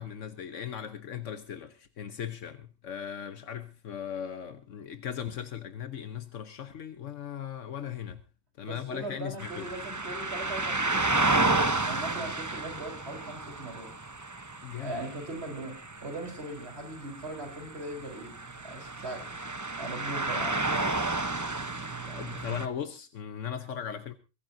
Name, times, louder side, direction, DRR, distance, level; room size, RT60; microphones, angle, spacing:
voice 1, 0.0-8.2 8.6-9.7 14.6-15.0 21.5-24.1, left 8 dB, 80° left, 1.3 m, -38 dB
voice 2, 8.7-13.9 14.8-15.8 16.0-18.4 18.6-19.2 19.8-21.0, right 2 dB, 55° right, 4.3 m, -40 dB
sound 1, 9.4-22.7, right 2 dB, 15° right, 0.7 m, -32 dB
23.0 x 15.5 x 2.7 m
omnidirectional pair, 1.3 m